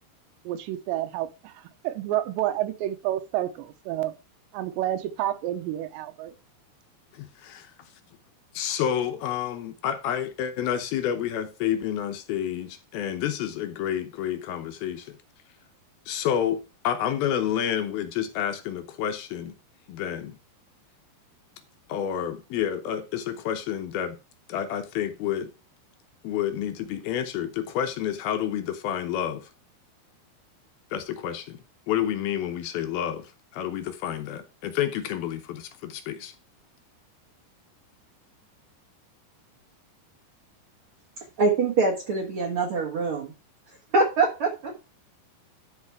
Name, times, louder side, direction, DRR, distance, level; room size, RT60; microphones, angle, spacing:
voice 1, 0.4-4.1 4.5-6.3, right 13 dB, 90° right, 3.1 m, -29 dB
voice 2, 7.1-7.7 8.5-15.2 16.1-19.5 19.9-20.4 21.9-24.2 24.5-25.5 26.2-29.5 30.9-31.6 31.9-36.3, left 10 dB, 75° left, 2.4 m, -29 dB
voice 3, 41.4-43.3 43.9-44.9, right 3 dB, 65° right, 1.3 m, -24 dB
12.0 x 4.7 x 4.7 m
omnidirectional pair, 4.9 m